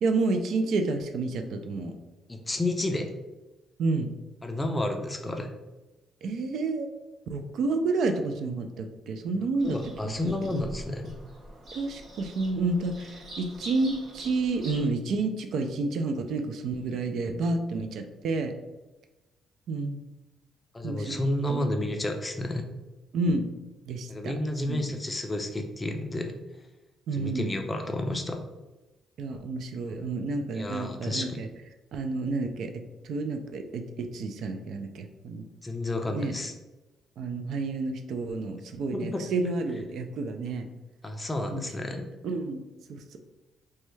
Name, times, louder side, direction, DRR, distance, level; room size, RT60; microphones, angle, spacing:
voice 1, 0.0-1.9 3.8-4.1 6.2-6.9 7.3-9.8 10.0-10.7 11.7-18.5 19.7-20.0 20.8-21.2 21.5-21.7 23.1-23.4 23.9-24.3 24.7-24.9 27.1-27.6 29.2-31.5 31.9-35.5 36.1-36.3 37.2-40.7 41.5-41.7 42.2-42.6 42.9-43.2, right 3 dB, 70° right, 6 dB, 0.3 m, -30 dB
voice 2, 2.3-3.1 4.4-5.5 9.6-11.1 20.7-22.7 24.1-26.3 27.1-28.4 30.5-31.3 35.6-36.5 38.9-39.2 41.0-42.0, left 1 dB, 15° left, 5 dB, 0.4 m, -31 dB
Bird vocalization bird call bird song, 9.6-14.9, right 1 dB, 50° right, 1.3 m, -45 dB
3.1 x 2.2 x 3.1 m, 1.1 s
cardioid pair, 100°, 0 cm